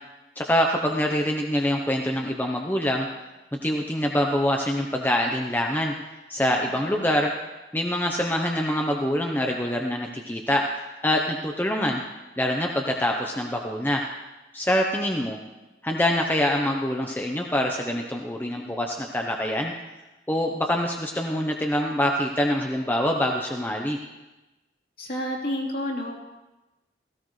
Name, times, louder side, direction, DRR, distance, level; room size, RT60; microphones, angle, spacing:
voice 1, 0.4-3.1 3.6-5.9 6.3-7.3 7.7-10.6 11.0-12.0 12.4-14.0 14.5-15.4 15.8-19.7 20.3-24.0, left 1 dB, 10° left, 1 dB, 0.8 m, -25 dB
voice 2, 25.0-26.2, equal, 55° left, -2 dB, 3.2 m, -30 dB
17.5 x 16.0 x 3.2 m, 1.1 s
head